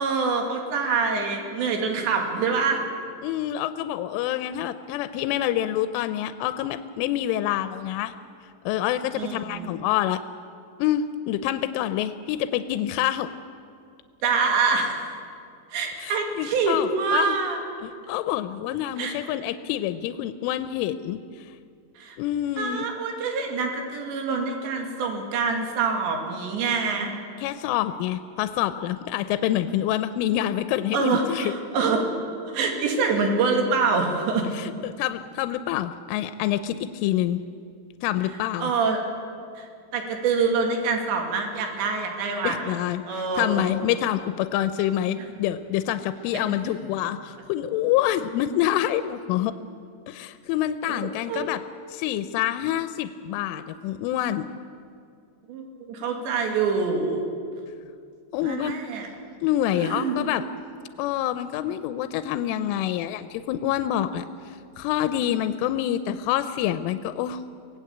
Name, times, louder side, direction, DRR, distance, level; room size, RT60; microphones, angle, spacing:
voice 1, 0.0-2.8 9.1-9.7 14.2-15.0 15.7-17.6 19.0-19.1 22.0-22.2 22.6-27.1 30.9-32.1 32.5-34.5 38.6-39.0 39.6-42.8 43.0-43.6 46.5-46.8 50.9-51.5 55.5-57.2 58.4-59.1 59.7-60.4, right 4 dB, 70° right, 3 dB, 4.5 m, -25 dB
voice 2, 3.2-8.1 8.7-10.2 10.8-13.3 16.0-17.4 17.8-21.5 22.2-22.9 27.4-31.5 34.5-37.4 38.0-38.7 42.4-49.5 50.1-51.6 51.9-54.5 58.3-58.7 59.4-60.5 61.0-67.4, left 12 dB, 90° left, 11 dB, 3.2 m, -27 dB
24.0 x 18.5 x 8.5 m, 2.3 s
omnidirectional pair, 5.5 m